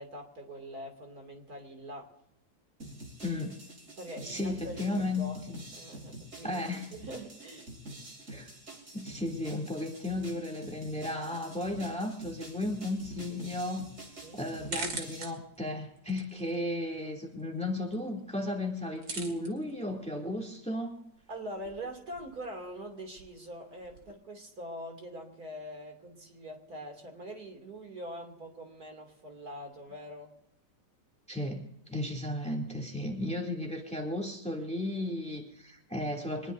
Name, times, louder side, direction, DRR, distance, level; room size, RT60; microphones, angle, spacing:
voice 1, 0.0-2.1 4.0-5.4 5.7-6.6 6.9-7.7 14.2-14.4 21.3-30.3, equal, 60° right, 3 dB, 3.3 m, -43 dB
sound 1, 2.8-15.3, right 1 dB, 45° right, 3.6 m, -47 dB
voice 2, 3.2-3.6 4.2-5.6 6.4-6.9 8.3-8.5 8.9-13.9 14.3-21.0 31.3-36.5, left 1 dB, 5° left, 1 dB, 2.6 m, -34 dB
sound 2, 12.9-24.1, right 3 dB, 90° right, 3.0 m, -47 dB
24.5 x 20.0 x 2.7 m, 0.77 s
omnidirectional pair, 1.9 m